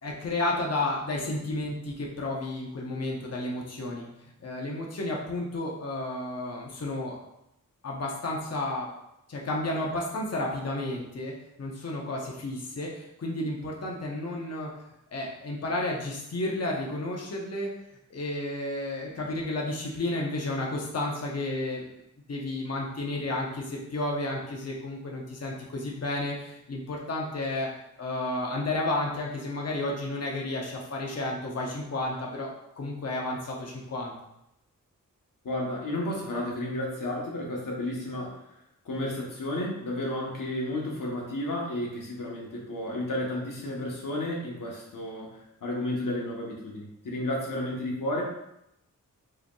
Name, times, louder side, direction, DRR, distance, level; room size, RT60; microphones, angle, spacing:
voice 1, 0.0-4.1 4.4-7.2 7.8-8.9 9.3-11.3 11.6-14.7 15.1-17.7 18.1-22.0 22.3-27.7 28.0-34.1, left 2 dB, 50° left, -2 dB, 0.9 m, -32 dB
voice 2, 35.4-38.4 38.8-48.2, left 1 dB, 80° left, -2 dB, 1.1 m, -32 dB
4.8 x 3.0 x 2.3 m, 0.83 s
wide cardioid pair, 70°, 32 cm